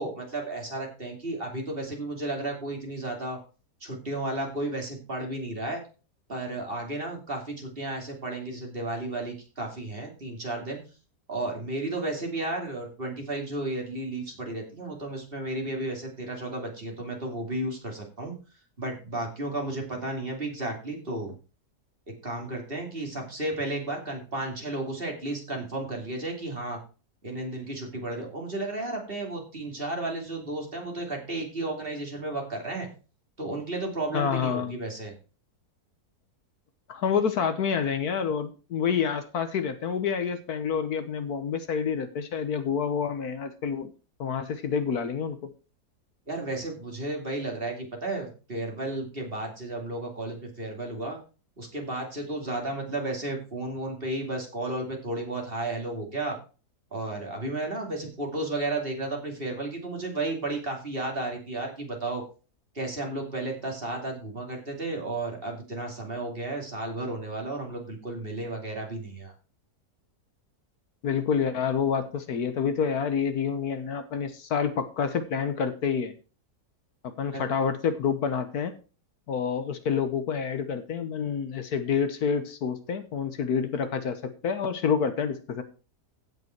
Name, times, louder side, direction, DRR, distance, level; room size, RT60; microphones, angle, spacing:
voice 1, 0.0-3.4 3.8-5.8 6.3-10.8 11.3-18.3 18.8-21.3 22.1-26.8 27.2-32.9 33.4-35.1 46.3-51.2 51.6-56.4 56.9-62.2 62.7-69.3 77.3-77.4, right 2 dB, 35° right, 1 dB, 3.0 m, -33 dB
voice 2, 34.1-34.8 36.9-43.9 44.2-45.5 71.0-76.1 77.0-78.7 79.3-85.6, left 6 dB, 65° left, 10 dB, 1.5 m, -28 dB
16.0 x 5.5 x 4.5 m, 0.34 s
omnidirectional pair, 1.8 m